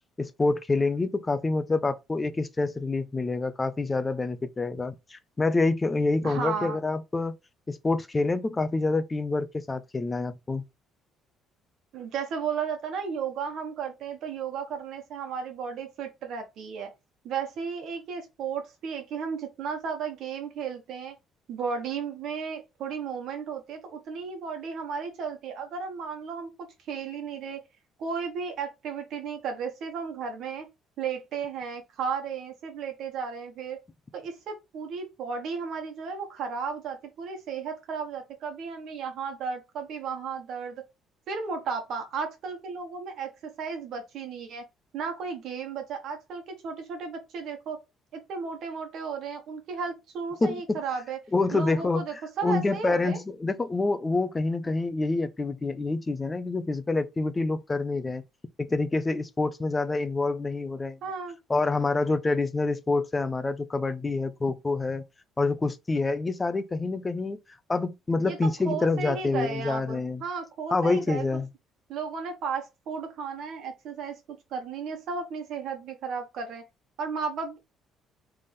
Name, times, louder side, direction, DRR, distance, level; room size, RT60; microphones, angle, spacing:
voice 1, 0.2-7.3 7.7-10.6 50.4-50.8 51.3-58.2 58.6-61.0 61.5-65.0 65.4-67.4 67.7-70.2 70.7-71.5, left 3 dB, 15° left, 0.5 m, -27 dB
voice 2, 6.2-6.8 11.9-16.9 17.2-21.1 21.5-26.5 26.9-27.6 28.0-30.6 31.0-33.8 34.1-40.8 41.3-43.3 43.6-44.6 44.9-47.8 48.1-51.2 51.5-53.2 61.0-61.4 68.2-68.4 68.6-71.3 71.9-76.6 77.0-77.6, right 6 dB, 60° right, 1.3 m, -34 dB
4.0 x 3.4 x 3.5 m
cardioid pair, 155°, 0 cm